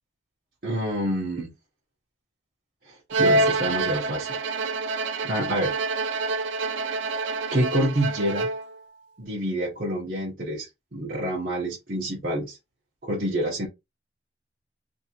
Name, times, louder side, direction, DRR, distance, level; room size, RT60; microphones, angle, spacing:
voice 1, 0.6-1.5 2.9-4.3 5.2-5.7 7.5-8.5 9.2-10.7 10.9-12.6 13.0-13.7, right 1 dB, 50° right, 0.8 m, -27 dB
Bowed string instrument, 3.1-8.8, right 2 dB, 80° right, 0.4 m, -26 dB
2.7 x 2.5 x 2.8 m
head